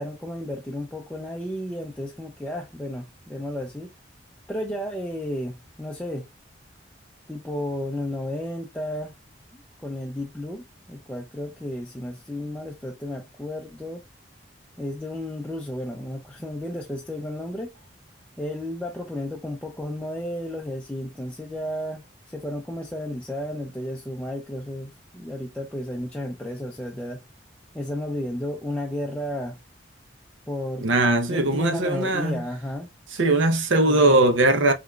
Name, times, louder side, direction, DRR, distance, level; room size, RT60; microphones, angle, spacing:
voice 1, 0.0-3.9 4.5-6.3 7.3-9.1 9.5-14.0 14.8-17.7 18.4-27.2 27.7-29.6 30.5-30.9 31.3-33.4 33.8-34.2, left 1 dB, 5° left, 0.5 m, -33 dB
voice 2, 30.8-32.4 33.2-34.7, right 2 dB, 85° right, 0.8 m, -20 dB
4.6 x 3.1 x 2.3 m
head